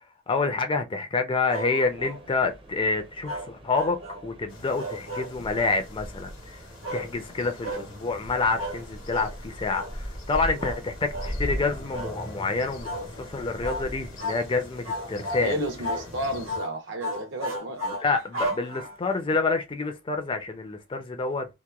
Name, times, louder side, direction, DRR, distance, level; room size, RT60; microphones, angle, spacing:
voice 1, 0.3-4.0 4.2-6.6 6.9-15.5 17.8-21.5, left 3 dB, 25° left, 0.4 m, -28 dB
sound 1, 1.5-2.2 3.2-4.3 4.8-5.8 6.8-7.1 7.6-7.9 8.6-8.8 9.1-9.3 9.7-9.9 10.6-10.8 11.1-11.4 11.9-12.2 12.8-13.1 13.6-13.9 14.2-14.4 14.9-15.5 15.8-16.1 16.5-16.7 17.0-19.1, equal, 85° right, 1.1 m, -34 dB
sound 2, 1.8-16.5, equal, 25° right, 0.6 m, -41 dB
sound 3, 4.5-16.6, left 1 dB, 80° left, 1.0 m, -45 dB
voice 2, 15.4-17.8, right 1 dB, 65° right, 0.8 m, -31 dB
2.9 x 2.1 x 2.3 m
head